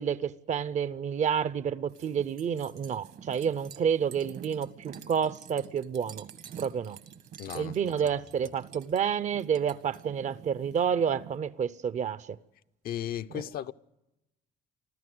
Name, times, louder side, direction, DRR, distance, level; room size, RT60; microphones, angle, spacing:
voice 1, 0.0-6.3 6.6-7.0 7.5-12.4 13.3-13.4, right 7 dB, 45° right, 0.7 m, -29 dB
sound 1, 1.9-11.4, right 8 dB, 65° right, 1.8 m, -48 dB
voice 2, 7.4-7.9 12.8-13.7, left 11 dB, 60° left, 0.7 m, -36 dB
26.5 x 14.5 x 7.9 m
cardioid pair, 110°, 17 cm